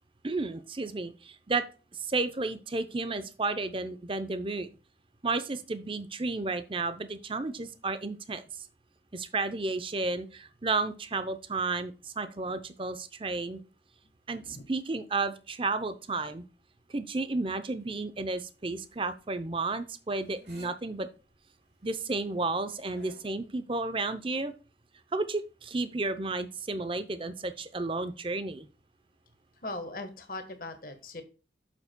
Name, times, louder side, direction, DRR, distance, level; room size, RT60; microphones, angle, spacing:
voice 1, 0.2-1.6 2.0-4.7 5.2-8.4 9.1-13.6 14.3-14.4 14.7-16.4 16.9-21.1 21.8-24.5 25.1-28.7, right 3 dB, 30° right, 11 dB, 0.6 m, -32 dB
voice 2, 14.3-14.7 29.6-31.2, left 2 dB, 50° left, 7 dB, 1.3 m, -39 dB
sound 1, 17.8-23.2, equal, 75° right, 4.7 m, -58 dB
9.5 x 7.2 x 2.2 m, 0.34 s
head